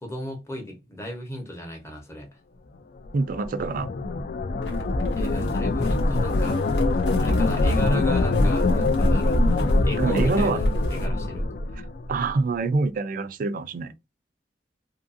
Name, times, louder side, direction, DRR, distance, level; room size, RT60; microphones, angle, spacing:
voice 1, 0.0-2.4 5.1-6.6 7.2-9.4 9.8-11.5, equal, 15° left, 0.8 m, -36 dB
sound 1, 3.1-12.3, left 2 dB, 50° left, 0.4 m, -23 dB
voice 2, 3.1-3.9 10.0-10.6 12.1-13.9, right 3 dB, 50° right, 0.3 m, -25 dB
sound 2, 4.6-11.1, equal, 85° left, 1.2 m, -40 dB
2.7 x 2.5 x 2.6 m
head